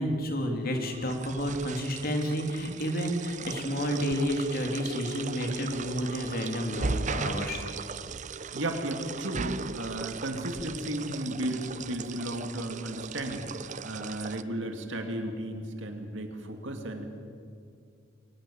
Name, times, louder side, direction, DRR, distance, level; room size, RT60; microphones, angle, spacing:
voice 1, 0.0-7.6, equal, 45° left, 4 dB, 3.1 m, -30 dB
sound 1, 0.8-14.4, right 4 dB, 35° right, 0.6 m, -37 dB
voice 2, 8.5-9.5 9.7-13.5 13.8-17.0, right 1 dB, 60° right, 5 dB, 2.6 m, -34 dB
23.0 x 19.5 x 7.2 m, 2.4 s
head